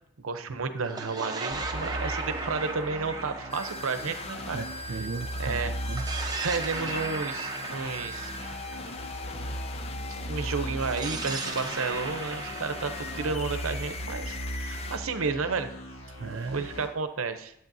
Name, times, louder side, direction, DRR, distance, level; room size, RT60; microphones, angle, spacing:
voice 1, 0.2-4.6 5.4-5.7 6.4-8.3 8.7-8.8 10.1-15.7 16.5-17.5, right 4 dB, 90° right, 10 dB, 0.7 m, -32 dB
sound 1, 0.8-5.2 5.8-9.7 10.8-14.6, right 3 dB, 20° right, 0.7 m, -37 dB
sound 2, 1.5-16.9, equal, 80° left, 1.8 m, -38 dB
sound 3, 3.5-15.0, left 3 dB, 30° left, 0.5 m, -40 dB
voice 2, 4.5-6.0 16.1-16.7, right 4 dB, 65° right, 5 dB, 0.4 m, -36 dB
12.0 x 8.1 x 2.7 m, 0.74 s
head